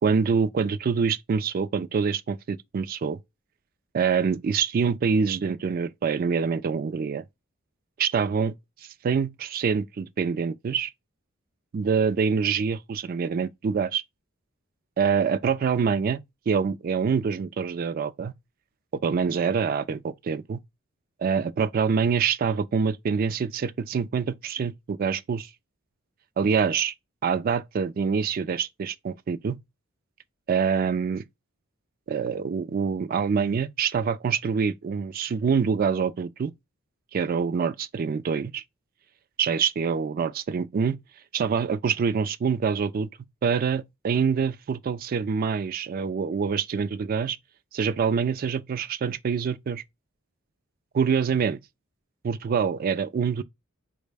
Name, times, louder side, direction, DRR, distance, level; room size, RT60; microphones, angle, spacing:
voice 1, 0.0-3.2 3.9-7.2 8.0-8.5 9.0-10.9 11.7-14.0 15.0-16.2 16.5-18.3 19.0-20.6 21.2-25.5 26.4-26.9 27.2-29.6 30.5-31.2 32.1-36.5 37.1-38.6 39.4-41.0 41.3-43.1 43.4-47.4 47.7-49.8 50.9-51.6 52.2-53.4, right 6 dB, 40° right, 0.3 m, -25 dB
4.7 x 2.1 x 3.3 m
head